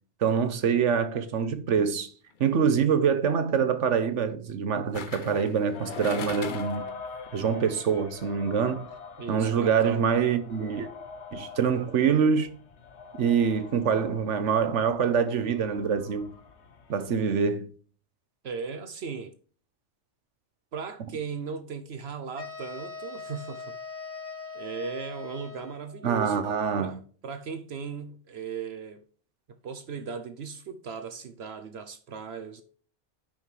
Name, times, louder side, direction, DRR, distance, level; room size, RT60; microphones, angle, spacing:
voice 1, 0.2-2.1 2.4-6.8 7.3-8.9 9.3-10.9 11.3-12.5 13.2-16.3 16.9-17.7 26.0-27.0, right 6 dB, 85° right, 1.3 m, -25 dB
sound 1, 2.3-2.6 4.9-6.9 7.2-7.3, left 6 dB, 50° left, 0.9 m, -40 dB
sound 2, 5.7-17.4, left 4 dB, 70° left, 1.3 m, -44 dB
voice 2, 9.2-10.0 18.4-19.3 20.7-23.7 24.5-26.4 26.8-29.0 29.6-32.6, right 6 dB, 65° right, 0.9 m, -37 dB
sound 3, 22.4-26.0, left 4 dB, 10° left, 1.6 m, -41 dB
10.0 x 5.8 x 3.2 m
omnidirectional pair, 1.2 m